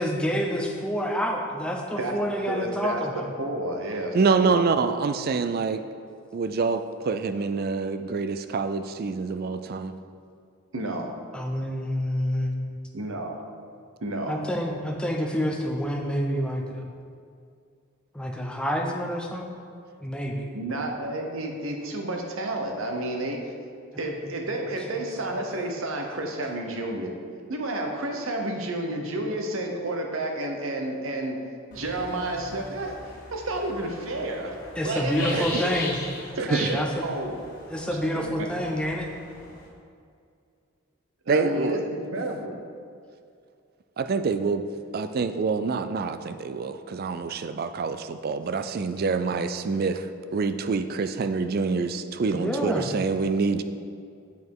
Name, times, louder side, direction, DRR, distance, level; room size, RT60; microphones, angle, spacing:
voice 1, 0.0-3.3 11.3-12.5 14.3-16.9 18.1-19.5 20.0-20.8 34.8-36.0 36.5-37.1 37.7-39.1 52.3-52.9, equal, 5° left, 1 dB, 0.6 m, -28 dB
voice 2, 2.5-4.6 10.7-11.1 12.9-13.3 14.0-14.4 20.5-23.4 24.0-27.1 27.5-31.4 31.7-33.0 33.3-34.5 34.8-35.8 36.4-37.4 38.1-38.7 41.3-42.6, right 1 dB, 75° right, 2 dB, 1.0 m, -31 dB
voice 3, 4.1-5.8 6.3-9.9 35.3-35.6 36.5-36.7 41.3-41.8 44.0-44.6 44.9-50.1 50.3-53.6, right 4 dB, 45° right, 10 dB, 0.4 m, -26 dB
sound 1, 31.7-39.7, left 2 dB, 40° left, 1.8 m, -40 dB
7.9 x 5.2 x 4.7 m, 2.3 s
head